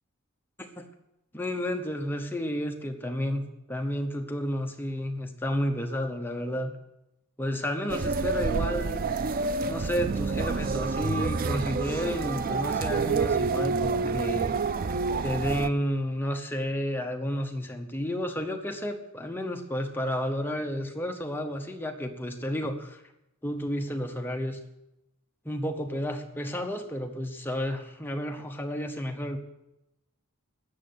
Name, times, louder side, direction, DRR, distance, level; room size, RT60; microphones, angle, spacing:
voice 1, 1.3-6.7 7.4-9.0 9.7-14.6 15.2-23.0 23.4-24.6 25.4-29.4, equal, 10° left, 4 dB, 0.9 m, -31 dB
sound 1, 7.9-15.7, right 4 dB, 40° right, 0.4 m, -28 dB
13.5 x 7.5 x 9.5 m, 0.93 s
head